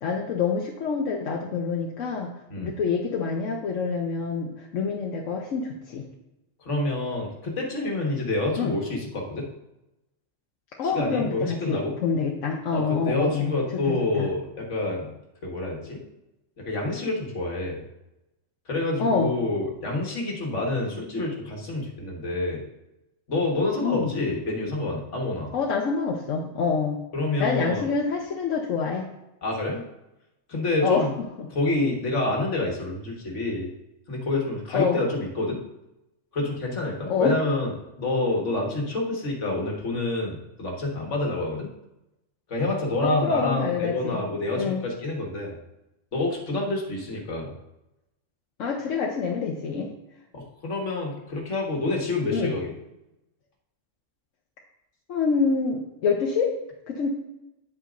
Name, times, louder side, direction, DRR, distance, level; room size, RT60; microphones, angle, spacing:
voice 1, 0.0-2.3 2.6-6.0 8.6-8.7 10.8-13.5 13.9-14.3 19.0-19.3 23.8-24.1 25.5-27.0 27.4-29.0 30.8-31.1 31.4-31.5 34.7-35.0 37.1-37.4 43.0-44.2 44.5-44.8 48.6-49.9 52.3-52.5 55.1-56.5 56.9-57.1, left 5 dB, 90° left, 0 dB, 1.2 m, -26 dB
voice 2, 6.7-9.5 10.8-12.0 12.7-15.1 15.4-16.0 16.6-17.8 18.7-22.6 23.3-25.5 27.1-27.9 29.4-29.8 30.5-31.1 31.5-33.7 34.1-35.6 36.3-37.7 38.0-41.7 42.5-45.6 46.1-47.5 50.3-52.7, left 2 dB, 70° left, -1 dB, 1.8 m, -27 dB
8.3 x 8.2 x 2.5 m, 0.92 s
omnidirectional pair, 1.3 m